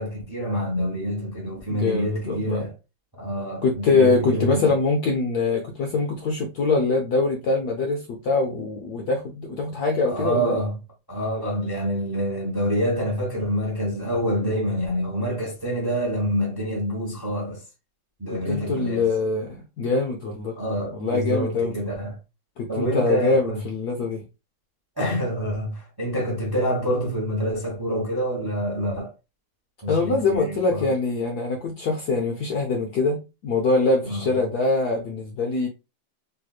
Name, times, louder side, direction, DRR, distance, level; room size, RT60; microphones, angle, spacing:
voice 1, 0.0-2.7 3.2-4.7 10.0-10.8 11.1-17.6 18.2-19.1 20.6-22.2 22.7-23.6 25.0-29.1 29.8-30.9 34.0-34.4, equal, 20° right, 0.7 m, -27 dB
voice 2, 1.7-2.7 3.6-10.6 18.3-20.6 20.9-21.7 22.6-24.2 29.9-35.7, left 3 dB, 70° left, 1.0 m, -23 dB
3.3 x 3.0 x 2.3 m
omnidirectional pair, 2.2 m